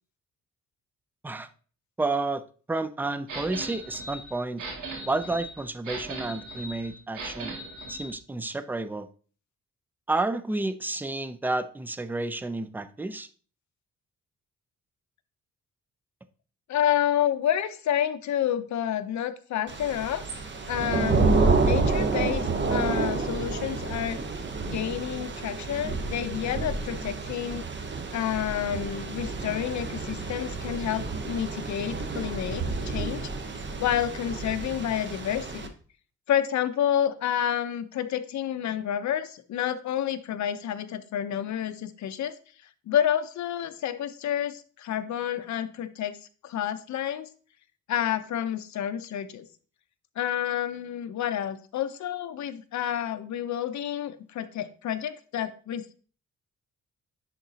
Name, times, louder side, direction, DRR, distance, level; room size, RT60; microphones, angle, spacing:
voice 1, 2.0-2.4 2.7-4.6 5.1-7.5 7.9-9.1 10.1-13.3, right 2 dB, 5° right, 12 dB, 0.3 m, -30 dB
sound 1, 3.3-8.1, right 2 dB, 85° right, 2.1 m, -38 dB
voice 2, 16.7-24.2 24.6-27.6 28.1-33.3 33.8-35.7 36.3-42.4 42.9-46.2 46.4-47.3 47.9-49.5 50.2-55.9, left 10 dB, 70° left, 11 dB, 0.6 m, -29 dB
Thunder / Rain, 19.7-35.7, right 4 dB, 40° right, 0.8 m, -29 dB
10.5 x 3.9 x 2.7 m, 0.41 s
cardioid pair, 120°, 30 cm